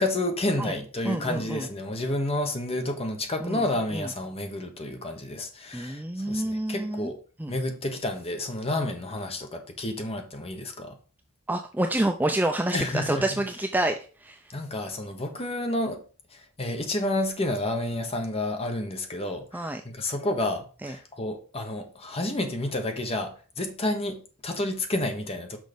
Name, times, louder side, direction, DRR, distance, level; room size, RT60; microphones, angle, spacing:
voice 1, 0.0-7.2 7.5-10.9 12.7-13.2 14.5-16.0 16.3-25.6, left 1 dB, 30° left, 1.2 m, -30 dB
voice 2, 1.0-1.7 3.4-3.6 3.9-4.1 5.7-7.1 7.4-7.5 11.5-14.4 19.5-19.8 20.8-20.9, right 1 dB, 10° right, 0.4 m, -28 dB
6.3 x 5.2 x 5.1 m
head